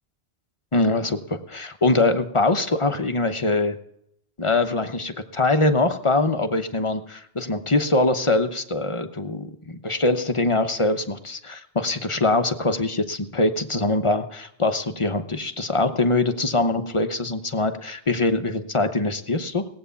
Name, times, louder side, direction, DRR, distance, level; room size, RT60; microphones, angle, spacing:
voice 1, 0.7-3.8 4.4-19.7, left 2 dB, 30° left, 9 dB, 0.9 m, -23 dB
18.5 x 8.6 x 7.0 m, 0.74 s
omnidirectional pair, 1.1 m